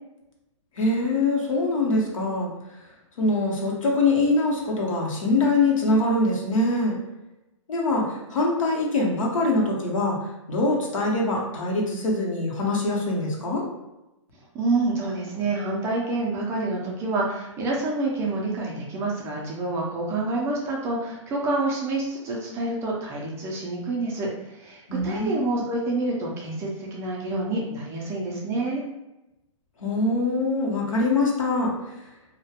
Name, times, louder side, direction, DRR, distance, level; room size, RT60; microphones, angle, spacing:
voice 1, 0.8-2.5 3.2-7.0 7.7-10.2 10.5-13.6 24.9-25.6 29.8-31.7, left 2 dB, 85° left, -2 dB, 0.8 m, -23 dB
voice 2, 14.5-28.8, right 2 dB, 15° right, -3 dB, 0.3 m, -28 dB
2.2 x 2.1 x 2.7 m, 0.97 s
hypercardioid pair, 140°, 17 cm